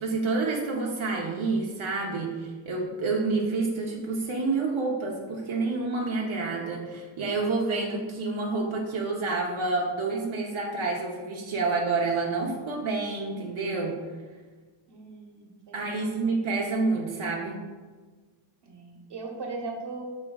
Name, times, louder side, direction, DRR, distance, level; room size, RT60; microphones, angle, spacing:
voice 1, 0.0-14.0 15.7-17.6, right 3 dB, 80° right, -2 dB, 1.0 m, -28 dB
voice 2, 14.9-16.4 18.6-20.2, right 3 dB, 60° right, 1 dB, 1.2 m, -39 dB
8.6 x 5.8 x 2.3 m, 1.4 s
wide cardioid pair, 165°, 47 cm